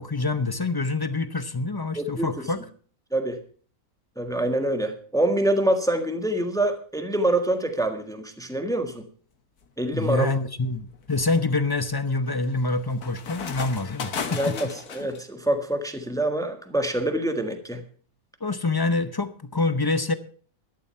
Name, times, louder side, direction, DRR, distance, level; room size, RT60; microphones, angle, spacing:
voice 1, 0.0-2.6 9.9-14.6 18.4-20.1, left 3 dB, 20° left, 12 dB, 0.6 m, -26 dB
voice 2, 1.9-2.3 3.1-3.4 4.2-9.0 9.8-10.3 14.3-17.8, right 1 dB, ahead, 7 dB, 1.5 m, -25 dB
sound 1, 9.6-10.0 10.6-15.2, left 6 dB, 80° left, 1.9 m, -36 dB
13.0 x 11.0 x 5.6 m, 0.43 s
omnidirectional pair, 1.6 m